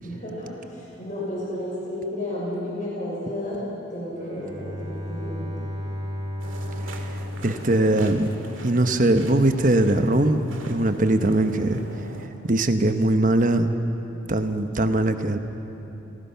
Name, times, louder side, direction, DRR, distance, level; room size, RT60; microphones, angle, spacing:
voice 1, 0.0-3.6 3.9-5.5, left 1 dB, 40° left, -6 dB, 6.1 m, -32 dB
Bowed string instrument, 4.1-8.5, left 1 dB, 60° right, 5.2 m, -34 dB
sound 1, 6.4-12.3, right 1 dB, 80° right, 2.2 m, -40 dB
voice 2, 7.4-8.3 8.6-10.4 10.7-11.8 12.4-13.7 14.3-15.4, right 1 dB, 40° right, 8 dB, 1.0 m, -21 dB
29.5 x 18.5 x 5.8 m, 3.0 s
head